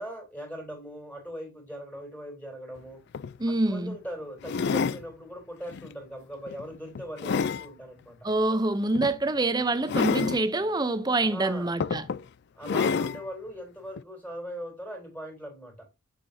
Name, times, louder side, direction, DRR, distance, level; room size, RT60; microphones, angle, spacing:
voice 1, 0.0-3.0 3.5-8.3 11.3-11.7 12.6-15.9, equal, 5° left, 3.1 m, -40 dB
sound 1, 2.8-2.9 3.1-3.4 4.4-5.0 5.7-5.9 6.5-7.7 8.9-9.1 9.9-10.4 11.2-11.3 11.8-12.2 12.6-13.2 14.0-14.1, left 5 dB, 50° left, 0.3 m, -28 dB
voice 2, 3.4-4.0 8.2-12.1, right 2 dB, 20° right, 0.6 m, -26 dB
7.5 x 6.8 x 2.7 m
head